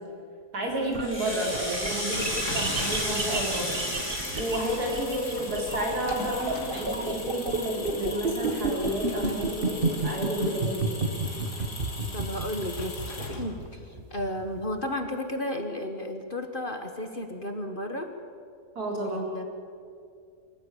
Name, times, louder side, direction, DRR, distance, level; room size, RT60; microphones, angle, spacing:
voice 1, 0.5-3.8 4.4-10.9 18.7-19.2, equal, 70° right, -1 dB, 4.7 m, -31 dB
sound 1, 0.7-14.8, right 3 dB, 35° right, 1.6 m, -31 dB
Rattle (instrument), 0.9-5.7, equal, 5° left, 6.4 m, -33 dB
sound 2, 2.0-13.7, left 2 dB, 80° left, 3.2 m, -39 dB
voice 2, 12.1-18.1 19.0-19.5, left 1 dB, 35° left, 6 dB, 1.4 m, -33 dB
25.5 x 15.0 x 8.4 m, 2.3 s
omnidirectional pair, 1.7 m